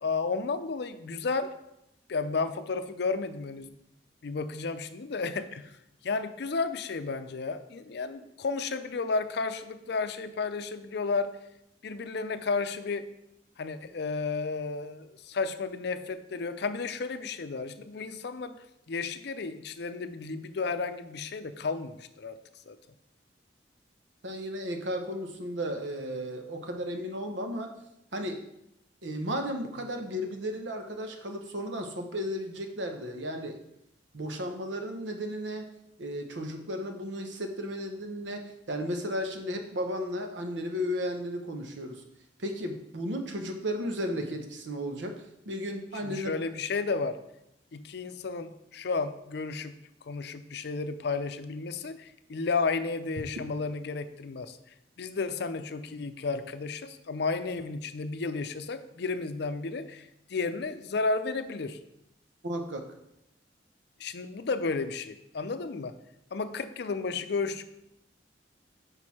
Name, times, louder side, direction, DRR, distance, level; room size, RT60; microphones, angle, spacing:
voice 1, 0.0-1.5 2.1-3.7 4.2-5.7 6.0-11.3 11.8-13.1 13.6-18.6 18.9-22.4 22.7-22.8 46.0-47.2 47.7-49.7 50.1-54.6 55.0-61.8 64.0-65.9 66.3-67.8, left 4 dB, 65° left, 10 dB, 0.5 m, -32 dB
voice 2, 24.2-27.7 28.1-28.4 29.0-33.6 34.1-35.7 36.0-42.0 42.4-45.2 45.5-46.4 62.4-62.8, equal, 90° right, 4 dB, 1.0 m, -34 dB
6.3 x 5.4 x 4.3 m, 0.82 s
head